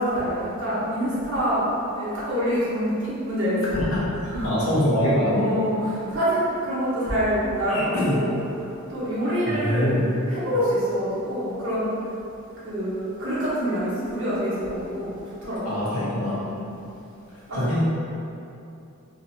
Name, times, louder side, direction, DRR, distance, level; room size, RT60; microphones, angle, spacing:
voice 1, 0.0-1.7 2.0-3.6 4.3-4.5 5.3-8.3 8.9-11.9 12.6-15.7 16.4-16.5 17.5-17.6, equal, 60° right, -10 dB, 1.3 m, -26 dB
voice 2, 3.7-4.1 4.4-5.7 7.7-8.2 9.5-10.2 15.6-16.5 17.3-17.8, left 1 dB, 80° left, -9 dB, 1.2 m, -24 dB
4.0 x 2.8 x 2.8 m, 2.7 s
head